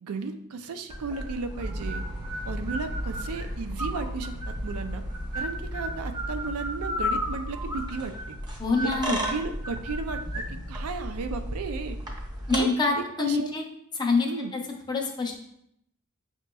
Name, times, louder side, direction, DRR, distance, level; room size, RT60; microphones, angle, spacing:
voice 1, 0.0-2.0 2.4-5.0 5.3-8.4 8.8-10.2 10.5-12.0 12.5-12.7 13.0-13.5 14.2-14.5, right 4 dB, 80° right, 7 dB, 0.4 m, -34 dB
sound 1, 0.9-12.6, equal, 20° right, 0.7 m, -33 dB
sound 2, 1.6-7.6, right 1 dB, 40° right, 1.0 m, -39 dB
voice 2, 8.6-9.3 12.5-13.6 14.0-14.6 14.9-15.4, left 3 dB, 20° left, 1 dB, 0.5 m, -26 dB
5.8 x 2.9 x 2.2 m, 0.74 s
head